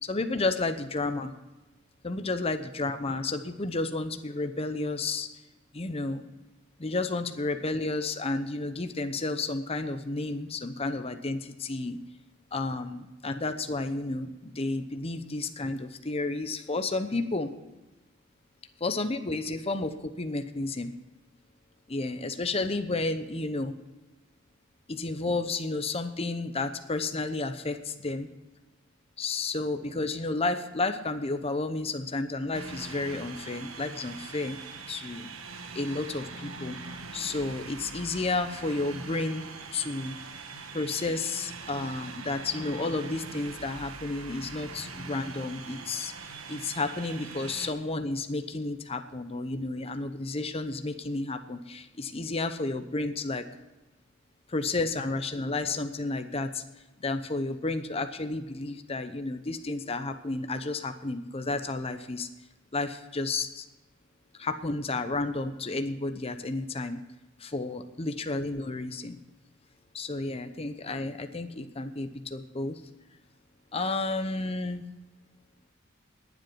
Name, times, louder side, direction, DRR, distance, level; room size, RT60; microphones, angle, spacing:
voice 1, 0.0-1.3 2.0-5.3 5.7-6.3 6.8-12.0 12.5-17.5 18.8-20.9 21.9-23.7 24.9-28.3 29.2-34.6 34.9-35.3 35.7-36.8 37.1-39.4 39.7-40.2 40.7-53.4 54.5-56.6 57.0-62.3 62.7-63.6 64.4-67.0 67.4-69.2 69.9-72.8 73.7-74.8, left 3 dB, 30° left, 8 dB, 0.8 m, -31 dB
sound 1, 32.5-47.7, right 4 dB, 80° right, 1.3 m, -42 dB
20.0 x 7.8 x 4.6 m, 1.1 s
head